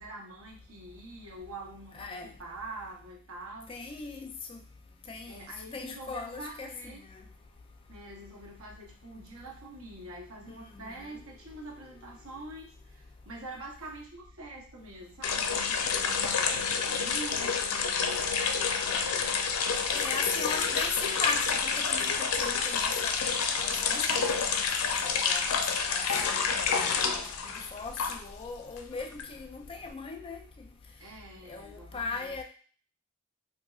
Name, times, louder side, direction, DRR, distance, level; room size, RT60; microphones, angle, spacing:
voice 1, 0.0-3.7 5.3-7.0 7.9-19.4 20.1-20.8 31.0-32.4, right 2 dB, 75° right, 0.9 m, -45 dB
voice 2, 1.9-2.3 3.7-4.6 5.1-7.2 10.5-11.2 19.9-23.3 23.6-27.0 27.4-30.5 31.5-32.4, left 4 dB, 25° left, 0.3 m, -39 dB
sound 1, 15.2-28.4 28.7-29.9, left 5 dB, 90° left, 0.4 m, -29 dB
4.1 x 2.6 x 2.3 m
head